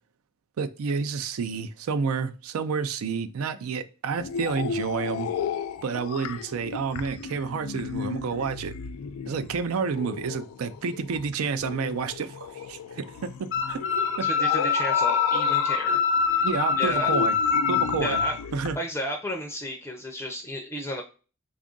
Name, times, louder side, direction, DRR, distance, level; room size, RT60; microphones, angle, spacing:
voice 1, 0.6-5.3 5.8-8.7 9.3-13.9 14.2-14.3 16.4-17.3 17.7-18.2 18.5-18.8, right 5 dB, 80° right, 0.4 m, -29 dB
sound 1, 4.2-18.8, left 7 dB, 90° left, 0.3 m, -34 dB
sound 2, 13.5-18.3, left 6 dB, 60° left, 0.7 m, -24 dB
voice 2, 14.2-16.0 16.8-17.1 18.0-18.4 18.7-21.0, equal, 10° left, 0.5 m, -33 dB
3.5 x 2.4 x 3.7 m
head